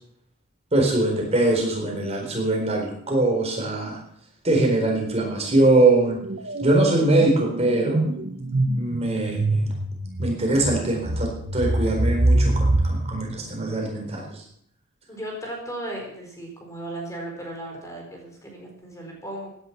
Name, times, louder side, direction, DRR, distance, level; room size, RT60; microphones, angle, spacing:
voice 1, 0.7-4.0 4.4-6.2 6.6-8.1 8.7-9.4 10.2-14.4, right 2 dB, 30° right, 0 dB, 4.2 m, -22 dB
sound 1, 4.8-5.2 5.4-14.2, right 1 dB, 55° right, 1.1 m, -25 dB
voice 2, 15.1-19.5, right 1 dB, 15° left, 0 dB, 4.2 m, -36 dB
16.5 x 10.5 x 6.0 m, 0.69 s
head